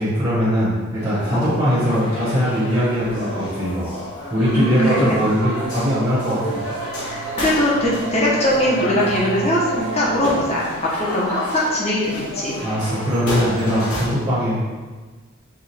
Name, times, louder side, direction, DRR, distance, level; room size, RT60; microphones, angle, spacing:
voice 1, 0.0-3.9 4.3-6.6 12.6-14.6, equal, 20° right, -11 dB, 1.3 m, -21 dB
sound 1, 1.0-14.1, left 1 dB, 75° left, 1.4 m, -31 dB
sound 2, 4.4-10.6, right 3 dB, 60° right, 0.5 m, -31 dB
voice 2, 4.5-5.1 7.0-10.7 11.0-12.6, left 1 dB, 30° left, -5 dB, 1.0 m, -21 dB
4.9 x 2.6 x 4.2 m, 1.3 s
head